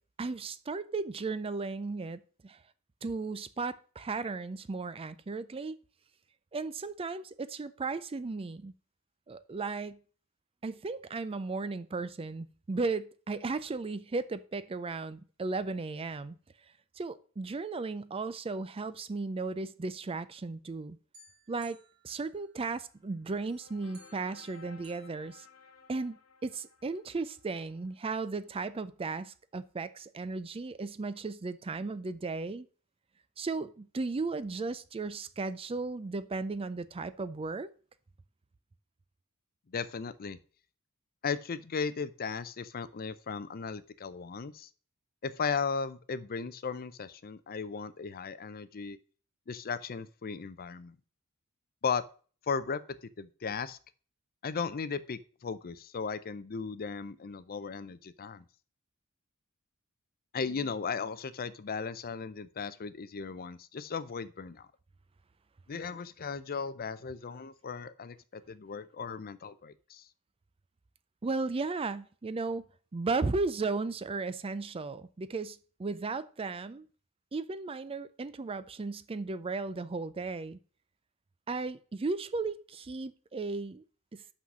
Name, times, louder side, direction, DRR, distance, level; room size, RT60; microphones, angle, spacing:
voice 1, 0.2-2.6 3.0-5.7 6.5-8.7 9.3-10.0 10.6-16.4 17.0-21.0 21.5-21.8 22.0-25.5 25.9-32.7 33.4-37.7 71.2-72.6 72.9-76.9 77.3-80.6 81.5-83.8 84.1-84.2, right 3 dB, 25° right, 0.4 m, -35 dB
sound 1, 21.1-23.1 23.5-26.0, right 3 dB, 50° right, 1.9 m, -61 dB
sound 2, 22.6-28.5, left 5 dB, 75° left, 1.4 m, -58 dB
voice 2, 39.7-40.4 41.2-44.7 45.2-49.0 49.5-51.0 51.8-52.0 52.5-52.8 53.2-53.8 54.4-58.4 60.3-64.7 65.7-70.1, left 5 dB, 45° left, 0.5 m, -36 dB
5.9 x 5.7 x 6.2 m
head